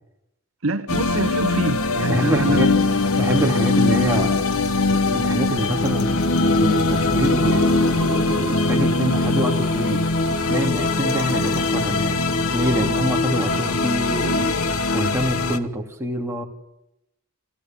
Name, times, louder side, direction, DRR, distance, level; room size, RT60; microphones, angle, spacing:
voice 1, 0.6-2.7, right 2 dB, 65° right, 10 dB, 1.0 m, -25 dB
sound 1, 0.9-15.6, left 3 dB, 75° left, 1.3 m, -21 dB
voice 2, 2.1-2.7 3.2-4.4 4.9-6.1 6.6-10.1 10.5-12.2 12.5-14.6 14.9-16.4, equal, 10° right, 1 dB, 2.6 m, -25 dB
29.0 x 14.0 x 7.6 m, 0.86 s
head